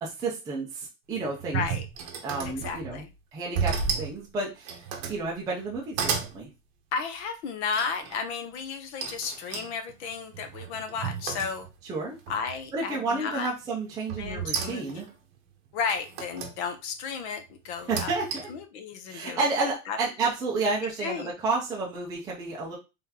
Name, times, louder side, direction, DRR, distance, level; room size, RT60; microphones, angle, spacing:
voice 1, 0.0-1.7 2.2-3.0 3.3-6.5 11.8-12.2 12.7-15.1 17.9-18.5 19.1-22.8, right 3 dB, 10° right, -4 dB, 0.4 m, -31 dB
sound 1, 1.1-3.0 3.6-4.2 4.6-5.2 5.7-6.4 7.7-8.2 9.0-11.9 12.3-12.8 14.1-15.1 15.9-16.6 17.7-18.6, right 6 dB, 45° right, 0.9 m, -33 dB
voice 2, 1.5-1.8 2.5-3.1 6.9-11.7 12.3-13.5 14.2-14.8 15.7-18.1 18.5-19.5 19.9-20.0 21.0-21.3, left 6 dB, 55° left, 8 dB, 0.9 m, -33 dB
3.7 x 3.4 x 2.8 m, 0.27 s
supercardioid pair, 160°, 40 cm